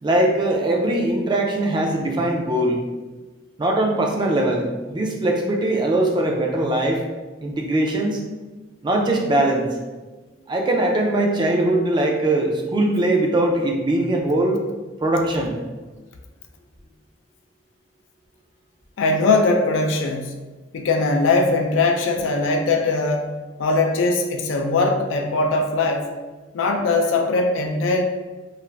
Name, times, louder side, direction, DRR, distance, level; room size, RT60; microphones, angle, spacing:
voice 1, 0.0-2.8 3.6-7.0 7.4-8.2 8.8-9.7 10.5-14.6 15.0-15.6, right 1 dB, 25° right, 1 dB, 0.4 m, -21 dB
voice 2, 19.0-20.3 20.7-26.1 26.5-28.0, left 3 dB, 85° left, 4 dB, 0.4 m, -20 dB
2.5 x 2.4 x 3.1 m, 1.3 s
head